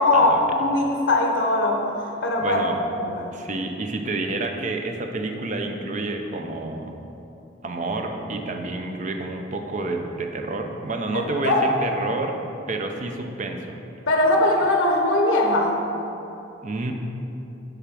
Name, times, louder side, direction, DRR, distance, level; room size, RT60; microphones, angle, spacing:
voice 1, 0.0-2.6 3.0-3.3 11.1-11.7 14.1-15.8, left 2 dB, 90° left, 2 dB, 0.7 m, -21 dB
voice 2, 2.4-2.8 3.3-6.9 7.6-12.4 12.7-13.8 16.6-16.9, right 2 dB, 40° right, 4 dB, 0.5 m, -29 dB
6.6 x 3.5 x 6.1 m, 2.9 s
head